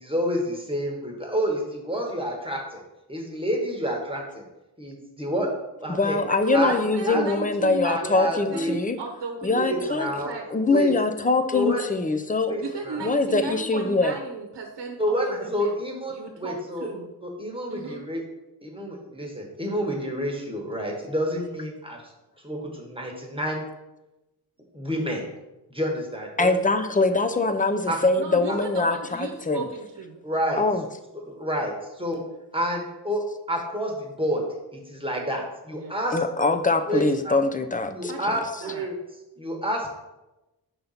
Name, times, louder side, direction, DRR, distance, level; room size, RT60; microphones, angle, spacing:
voice 1, 0.0-2.8 3.1-4.4 4.8-5.5 5.8-6.2 6.5-6.8 7.0-7.3 7.8-8.8 9.5-10.3 10.7-10.9 11.5-11.8 12.5-13.1 15.0-16.9 17.2-18.2 18.6-22.0 22.4-23.7 24.7-25.2 25.7-26.6 27.9-28.0 30.2-30.6 31.2-32.2 32.5-33.2 33.5-34.4 34.7-36.2 36.9-37.4 37.9-38.9 39.4-39.9, equal, 15° right, 0 dB, 1.3 m, -29 dB
voice 2, 5.9-9.0 9.4-10.2 10.5-12.5 13.0-14.1 26.4-29.7 30.6-30.8 36.1-38.1, left 3 dB, 20° left, 8 dB, 0.5 m, -23 dB
voice 3, 6.5-10.5 12.6-15.8 16.1-17.1 17.7-18.0 28.1-30.2 35.7-36.0 38.1-38.2 38.6-38.9, right 4 dB, 75° right, 2 dB, 0.9 m, -35 dB
5.5 x 3.9 x 5.7 m, 0.99 s
wide cardioid pair, 85°, 41 cm